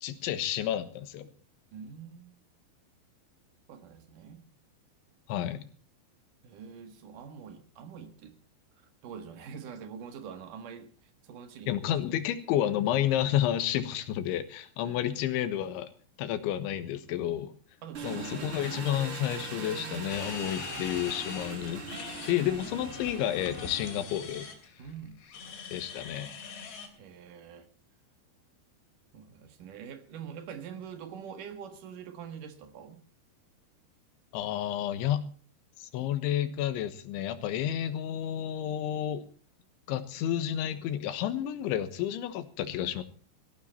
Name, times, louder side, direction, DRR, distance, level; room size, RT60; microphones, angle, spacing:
voice 1, 0.0-1.3 5.3-5.7 11.7-15.9 16.2-17.5 18.0-21.8 22.3-24.5 25.7-26.3 34.3-35.3 35.8-39.3 39.9-43.0, left 11 dB, 85° left, 12 dB, 3.7 m, -30 dB
voice 2, 1.7-2.3 3.7-4.5 6.4-8.4 9.0-12.0 14.8-15.1 17.8-18.9 24.8-25.2 26.9-27.7 29.1-33.0, right 7 dB, 55° right, 9 dB, 2.7 m, -45 dB
Engine, 17.9-24.4, right 4 dB, 35° right, 3.0 m, -41 dB
sound 1, 20.1-26.9, left 6 dB, 70° left, 5.1 m, -43 dB
17.5 x 15.0 x 4.3 m, 0.41 s
omnidirectional pair, 5.3 m